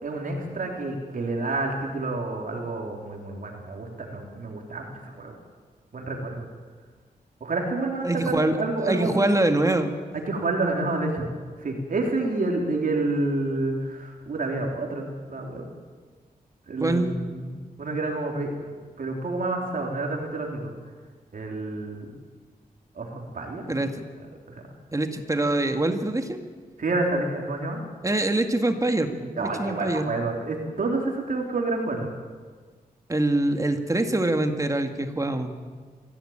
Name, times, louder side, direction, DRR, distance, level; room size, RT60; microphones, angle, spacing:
voice 1, 0.0-5.3 5.9-6.5 7.4-9.3 10.3-11.3 11.6-15.7 16.7-17.5 17.8-18.5 19.0-20.7 21.3-22.1 23.0-23.8 24.6-24.7 26.8-27.8 29.4-32.1, right 2 dB, 60° right, 1 dB, 3.6 m, -29 dB
voice 2, 8.0-8.6 8.9-10.0 16.8-17.1 23.7-24.0 24.9-26.4 28.0-30.1 33.1-35.5, right 2 dB, 20° right, 6 dB, 2.0 m, -24 dB
24.0 x 16.0 x 8.9 m, 1.5 s
wide cardioid pair, 95°, 16 cm